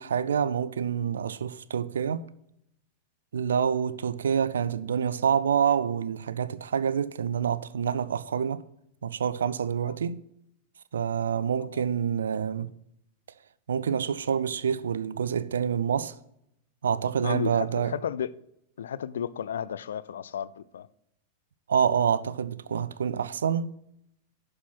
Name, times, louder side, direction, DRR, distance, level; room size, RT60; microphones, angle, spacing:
voice 1, 0.0-2.3 3.3-8.7 9.0-10.2 10.9-12.7 13.7-16.2 16.8-17.9 21.7-23.7, right 7 dB, 65° right, 0.4 m, -27 dB
voice 2, 11.5-11.8 17.2-18.3 18.8-20.9, left 8 dB, 65° left, 0.4 m, -33 dB
11.0 x 4.4 x 6.1 m
figure-of-eight pair, 90°, 0 cm